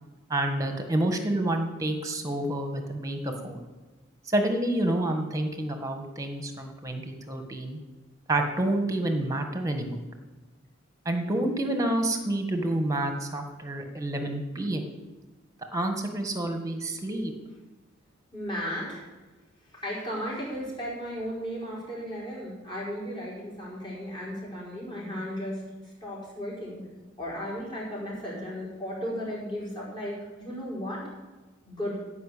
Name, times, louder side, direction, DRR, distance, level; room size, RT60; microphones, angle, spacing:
voice 1, 0.3-3.6 4.3-7.8 8.3-10.0 11.0-14.9 15.7-17.3, right 1 dB, 15° right, 5 dB, 1.5 m, -28 dB
voice 2, 18.3-19.0 19.7-25.6 26.0-26.8 27.2-31.0 31.7-32.0, equal, 25° left, -6 dB, 5.3 m, -35 dB
15.0 x 5.6 x 8.4 m, 1.2 s
head